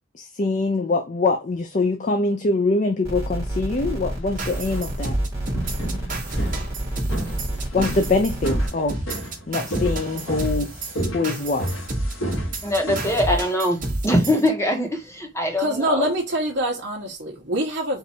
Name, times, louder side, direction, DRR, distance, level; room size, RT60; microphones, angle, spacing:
voice 1, 0.2-5.2 7.7-9.0 9.5-10.7 11.1-11.7, left 3 dB, 35° left, 0.5 m, -23 dB
sound 1, 3.0-8.7, right 1 dB, 15° right, 1.5 m, -30 dB
sound 2, 3.6-13.2, equal, 75° left, 1.6 m, -33 dB
sound 3, 4.4-14.5, right 2 dB, 40° right, 1.3 m, -29 dB
voice 2, 12.6-16.1, equal, 15° left, 1.2 m, -22 dB
voice 3, 15.6-18.0, right 1 dB, 55° right, 1.1 m, -25 dB
4.5 x 2.6 x 4.3 m
head